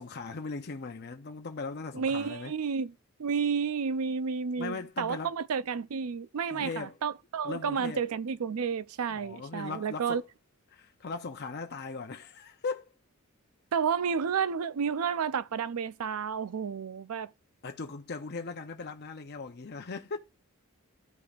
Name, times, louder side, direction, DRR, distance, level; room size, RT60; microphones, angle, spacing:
voice 1, 0.0-2.5 4.6-5.3 6.5-7.0 7.4-8.0 9.1-10.2 10.7-12.9 17.6-20.2, left 4 dB, 50° left, 0.6 m, -38 dB
voice 2, 1.9-2.9 3.2-10.2 13.7-17.3, right 6 dB, 80° right, 0.5 m, -31 dB
14.5 x 5.1 x 2.4 m
head